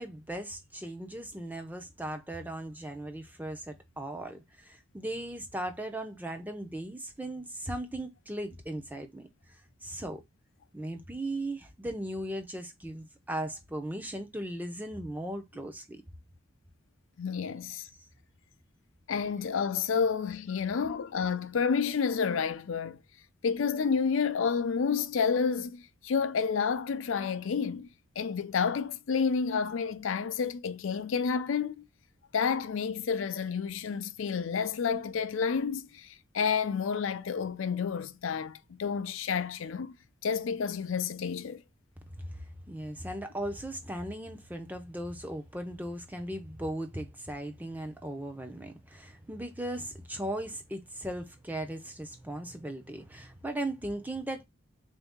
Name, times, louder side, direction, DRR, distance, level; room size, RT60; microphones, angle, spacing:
voice 1, 0.0-9.3 9.8-10.2 10.7-16.0 42.2-54.4, right 1 dB, 10° right, 0.6 m, -38 dB
voice 2, 17.2-17.9 19.1-23.0 23.4-27.9 28.2-31.8 32.3-39.9 40.2-41.6, left 6 dB, 75° left, 0.4 m, -30 dB
3.8 x 2.7 x 3.5 m
head